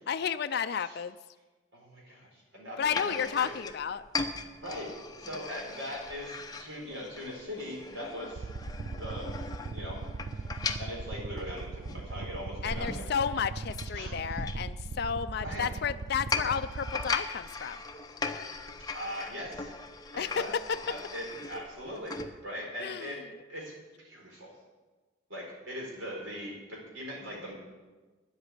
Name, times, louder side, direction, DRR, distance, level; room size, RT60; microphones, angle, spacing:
voice 1, 0.1-1.2 2.8-4.0 12.6-17.8 20.2-20.8 22.8-23.2, left 7 dB, 50° left, 10 dB, 0.4 m, -32 dB
voice 2, 1.7-3.5 4.6-4.9 5.2-8.5 8.9-9.3 9.7-10.0 10.3-10.5 10.8-13.0 13.9-14.1 15.4-15.7 18.9-19.7 20.1-20.5 20.9-22.1 22.4-23.2 23.5-24.5 25.3-27.5, equal, 80° right, -2 dB, 4.5 m, -40 dB
sound 1, 2.8-22.3, left 4 dB, 20° left, 0.7 m, -39 dB
sound 2, 8.3-17.1, right 4 dB, 45° right, 0.3 m, -39 dB
10.0 x 8.1 x 9.8 m, 1.3 s
head